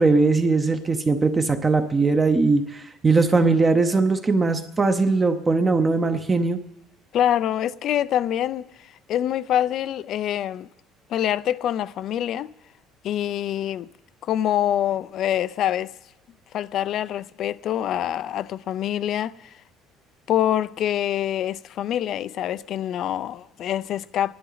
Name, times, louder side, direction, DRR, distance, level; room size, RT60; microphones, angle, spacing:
voice 1, 0.0-6.6, right 3 dB, 15° right, 0.7 m, -20 dB
voice 2, 7.1-8.7 9.1-10.7 11.1-12.5 13.0-13.9 14.2-15.9 16.5-19.5 20.3-24.3, left 11 dB, 50° left, 0.4 m, -25 dB
27.5 x 11.0 x 4.0 m
cardioid pair, 155°, 0 cm